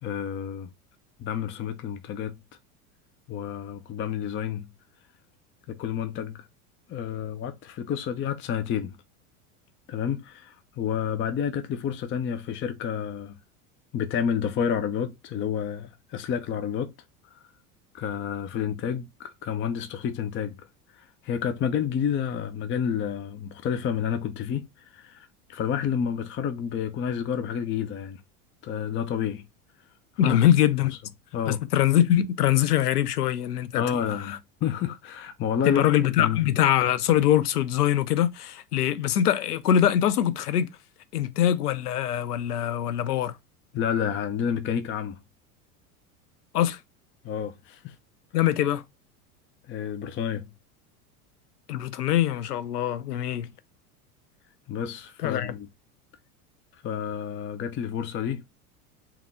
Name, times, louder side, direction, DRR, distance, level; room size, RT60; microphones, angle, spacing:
voice 1, 0.0-0.7 1.2-2.4 3.3-4.7 5.7-6.5 6.9-9.0 9.9-13.4 13.9-16.9 17.2-17.5 17.9-20.7 20.9-28.2 28.6-29.5 30.2-30.4 31.3-31.6 33.8-35.9 36.2-36.5 43.7-45.2 47.2-48.0 49.7-50.5 54.7-55.7 56.7-58.4, left 8 dB, 25° left, 0.5 m, -30 dB
voice 2, 30.2-30.9 31.5-33.8 34.3-34.4 35.7-40.7 41.1-43.4 46.5-46.8 48.3-48.8 51.7-53.5 55.2-55.5, left 11 dB, 85° left, 0.6 m, -23 dB
3.6 x 3.1 x 3.5 m
hypercardioid pair, 90°, 45 cm